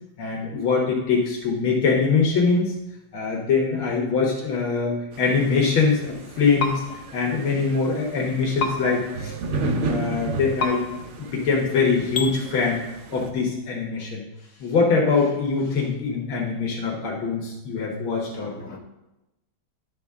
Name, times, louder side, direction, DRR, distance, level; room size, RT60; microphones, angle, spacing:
voice 1, 0.2-2.7 3.1-6.8 7.1-10.8 11.2-12.8 13.1-14.2 14.6-18.5, left 4 dB, 80° left, -2 dB, 2.0 m, -23 dB
sound 1, 5.1-13.3, right 4 dB, 60° right, 0.7 m, -34 dB
sound 2, 6.6-6.7 8.6-8.7 10.6-10.7 12.1-12.3, left 3 dB, 65° left, 1.8 m, -24 dB
voice 2, 18.2-18.8, left 3 dB, 10° left, -1 dB, 0.8 m, -45 dB
11.0 x 6.8 x 3.6 m, 0.94 s
omnidirectional pair, 2.2 m